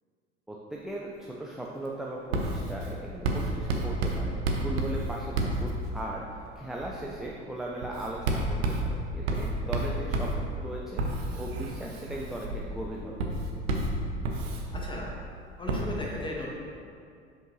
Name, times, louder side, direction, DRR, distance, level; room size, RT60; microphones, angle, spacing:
voice 1, 0.5-13.3, right 1 dB, ahead, -3 dB, 0.5 m, -38 dB
Writing, 2.3-6.2 6.8-7.1 7.8-15.2 15.7-15.8, right 2 dB, 70° right, 0.8 m, -31 dB
voice 2, 14.7-15.1 15.6-16.5, left 1 dB, 15° left, -3 dB, 1.4 m, -36 dB
7.4 x 5.2 x 3.0 m, 2.3 s
figure-of-eight pair, 65°, 33 cm